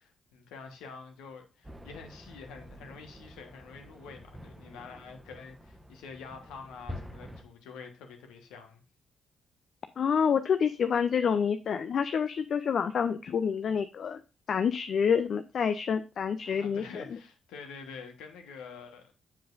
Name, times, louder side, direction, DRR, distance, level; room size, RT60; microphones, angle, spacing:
voice 1, 0.0-8.8 16.4-19.1, left 5 dB, 70° left, 1.3 m, -47 dB
sound 1, 1.6-7.4, left 1 dB, 10° right, 1.0 m, -47 dB
voice 2, 10.0-14.2 14.5-17.0, left 7 dB, 55° left, 0.4 m, -28 dB
7.6 x 7.3 x 2.6 m
figure-of-eight pair, 40°, 0 cm